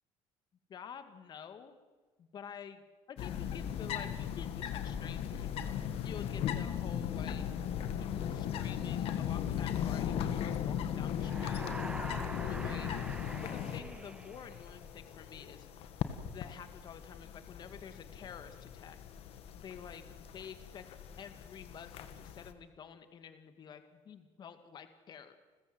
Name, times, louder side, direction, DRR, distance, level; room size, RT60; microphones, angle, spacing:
voice 1, 0.7-1.7 2.2-5.5 6.0-7.4 8.0-11.6 12.4-12.9 13.3-15.7 16.3-19.0 19.5-20.8 21.2-25.4, left 7 dB, 40° left, 9 dB, 2.0 m, -49 dB
sound 1, 3.2-22.5, left 9 dB, 60° left, 1.8 m, -38 dB
sound 2, 11.1-15.0, right 2 dB, 10° right, 1.1 m, -45 dB
30.0 x 14.5 x 7.8 m, 1.3 s
cardioid pair, 140°, 11 cm